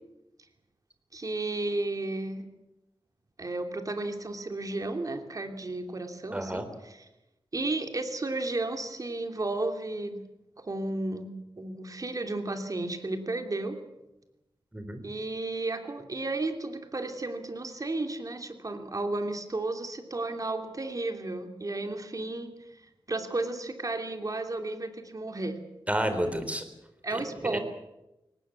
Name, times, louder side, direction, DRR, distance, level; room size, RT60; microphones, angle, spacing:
voice 1, 1.1-2.4 3.4-7.0 7.5-10.2 10.6-11.3 11.6-13.8 15.0-22.5 23.1-25.6 27.0-27.6, right 2 dB, 40° right, 5 dB, 2.9 m, -33 dB
voice 2, 6.3-6.6 14.7-15.0 25.9-26.6 27.1-27.6, right 1 dB, 15° right, 8 dB, 3.9 m, -31 dB
22.5 x 19.0 x 8.5 m, 0.97 s
wide cardioid pair, 90°, 9 cm